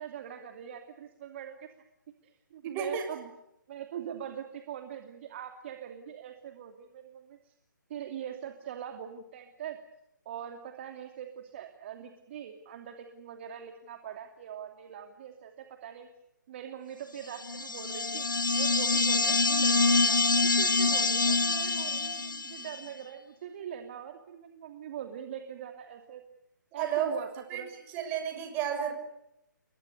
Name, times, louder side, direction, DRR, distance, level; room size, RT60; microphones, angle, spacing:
voice 1, 0.0-1.7 2.2-3.3 3.7-7.5 7.9-9.8 10.2-16.1 16.5-26.2 26.7-27.7, right 9 dB, 35° right, 6 dB, 2.7 m, -42 dB
voice 2, 2.7-3.0 26.7-27.1 27.5-27.6 27.9-28.9, right 9 dB, 20° right, 6 dB, 6.4 m, -31 dB
sound 1, 17.4-22.8, left 3 dB, 75° left, 1.4 m, -26 dB
29.5 x 24.0 x 6.8 m, 0.84 s
figure-of-eight pair, 140°, 11 cm